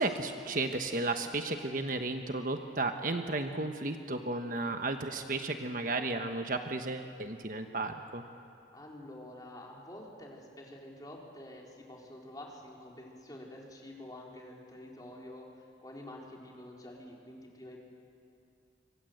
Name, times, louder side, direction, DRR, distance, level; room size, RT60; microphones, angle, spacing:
voice 1, 0.0-8.2, right 2 dB, 50° right, 6 dB, 1.2 m, -33 dB
voice 2, 8.7-15.5 15.8-17.8, left 1 dB, 20° left, -2 dB, 4.2 m, -48 dB
25.5 x 25.5 x 8.0 m, 2.5 s
head